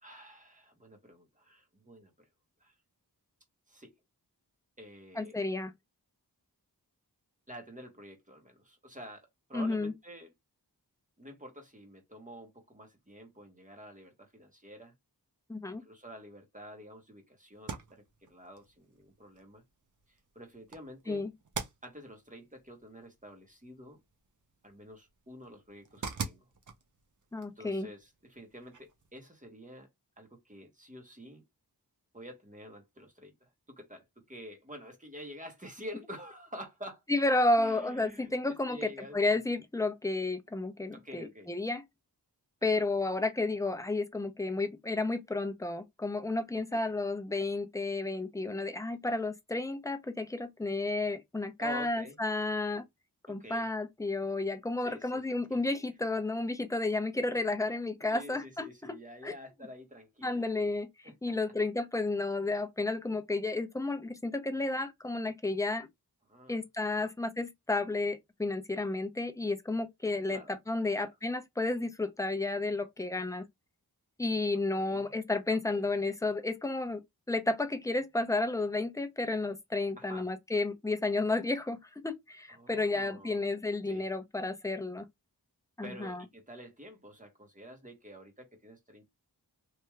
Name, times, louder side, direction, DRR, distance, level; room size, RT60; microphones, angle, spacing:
voice 1, 0.0-2.3 2.6-2.7 3.7-3.9 4.8-5.4 7.5-10.3 11.2-14.9 15.8-19.6 20.3-21.3 21.8-24.0 24.6-26.5 27.6-29.9 30.2-31.4 32.1-37.0 37.6-39.2 40.9-41.5 42.6-42.8 46.7-46.8 51.6-52.2 53.3-53.7 54.8-55.2 55.5-55.6 58.1-60.5 61.0-61.3 66.3-66.6 67.0-67.1 70.3-70.5 70.9-71.1 74.7-75.1 75.7-75.9 80.0-80.3 82.5-83.5 83.9-84.1 85.8-89.1, equal, 20° right, 1.3 m, -49 dB
voice 2, 5.2-5.7 9.5-9.9 15.5-15.8 21.1-21.3 27.3-27.9 37.1-41.8 42.6-52.8 53.3-59.0 59.2-59.3 60.2-65.9 66.5-73.4 74.2-81.8 82.0-85.0 85.8-86.2, left 2 dB, 10° left, 0.6 m, -32 dB
wuc front glass vry close open close open, 17.5-29.2, right 5 dB, 50° right, 0.7 m, -46 dB
3.2 x 2.7 x 2.3 m
wide cardioid pair, 50°, 39 cm